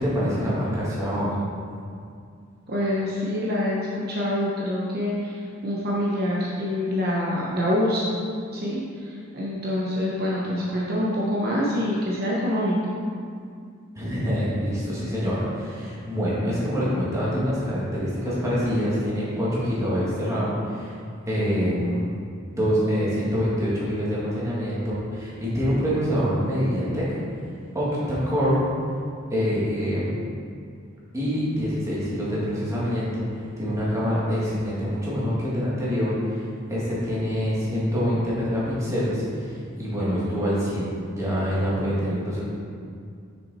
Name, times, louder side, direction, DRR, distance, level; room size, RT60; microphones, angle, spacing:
voice 1, 0.0-1.3 14.0-20.9 21.3-22.0 22.5-27.0 27.7-28.6 29.3-30.1 31.1-42.5, equal, 15° right, -8 dB, 1.9 m, -25 dB
voice 2, 2.7-8.2 8.5-12.9, left 1 dB, 50° right, -5 dB, 0.9 m, -26 dB
6.8 x 6.1 x 4.2 m, 2.3 s
head